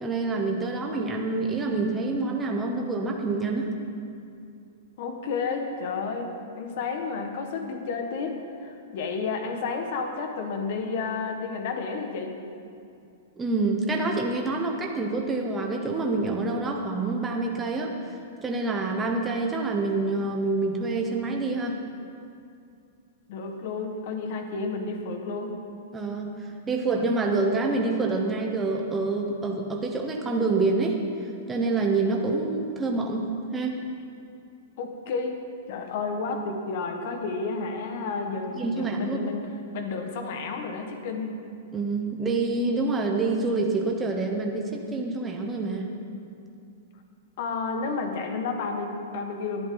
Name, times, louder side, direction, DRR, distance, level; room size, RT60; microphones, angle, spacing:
voice 1, 0.0-3.7 13.4-18.0 18.4-21.8 25.9-33.7 38.6-39.3 41.7-45.9, right 3 dB, 10° right, 1 dB, 0.9 m, -27 dB
voice 2, 5.0-12.3 23.3-25.6 34.8-35.4 35.7-39.5 39.7-41.3 47.4-49.7, left 4 dB, 45° left, 4 dB, 1.6 m, -31 dB
18.5 x 12.0 x 4.0 m, 2.5 s
supercardioid pair, 170°, 0 cm